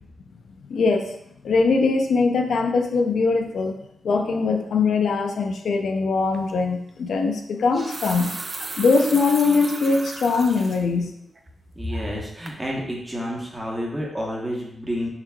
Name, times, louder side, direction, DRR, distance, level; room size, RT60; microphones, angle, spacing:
voice 1, 0.7-1.2 1.4-3.8 4.0-8.3 8.8-11.2, left 4 dB, 80° left, 4 dB, 0.4 m, -21 dB
sound 1, 6.3-6.5 7.5-10.8 11.3-11.4 11.9-12.2 12.5-12.6, right 3 dB, 40° right, 0.4 m, -35 dB
voice 2, 11.8-15.1, equal, 20° right, -2 dB, 1.1 m, -29 dB
5.6 x 3.1 x 2.3 m, 0.77 s
cardioid pair, 85°, 0 cm